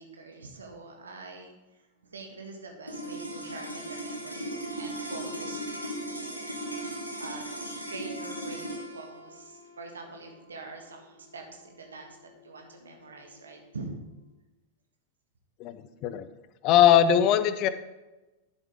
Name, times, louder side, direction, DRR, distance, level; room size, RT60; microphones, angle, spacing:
voice 1, 0.0-6.4 7.2-13.9, right 3 dB, 70° right, 3 dB, 1.6 m, -45 dB
sound 1, 2.8-13.3, right 1 dB, 90° right, 1.2 m, -38 dB
voice 2, 15.6-16.3 16.6-17.7, left 10 dB, 40° left, 13 dB, 0.6 m, -21 dB
11.5 x 7.1 x 3.5 m, 1.1 s
figure-of-eight pair, 90°, 0 cm